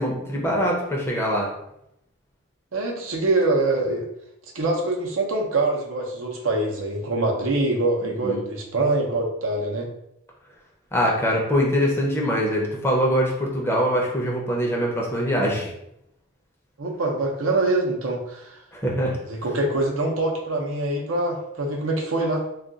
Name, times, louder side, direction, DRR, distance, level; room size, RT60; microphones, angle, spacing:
voice 1, 0.0-1.5 8.0-8.4 10.9-15.7 18.7-19.2, equal, 10° left, -2 dB, 0.5 m, -23 dB
voice 2, 2.7-4.1 4.5-9.9 16.8-18.6 19.3-22.4, right 2 dB, 80° right, -1 dB, 0.7 m, -24 dB
2.4 x 2.3 x 3.8 m, 0.79 s
head